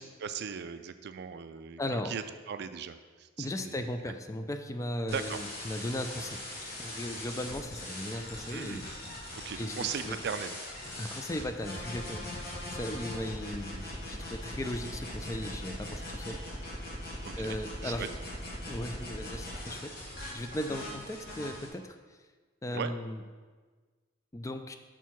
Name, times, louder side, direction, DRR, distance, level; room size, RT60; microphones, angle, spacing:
voice 1, 0.0-3.9 5.1-5.4 8.5-8.9 9.4-10.6 17.2-17.6 17.8-18.1 22.7-22.9, right 7 dB, 55° right, 10 dB, 0.4 m, -38 dB
voice 2, 1.8-2.1 3.4-8.8 9.6-10.2 11.0-16.6 17.4-18.1 18.6-19.9 20.3-22.0 22.6-23.2 24.3-24.7, left 1 dB, 15° left, 7 dB, 0.4 m, -37 dB
sound 1, 5.1-21.7, left 1 dB, 50° left, 1.7 m, -40 dB
6.0 x 4.6 x 5.8 m, 1.4 s
head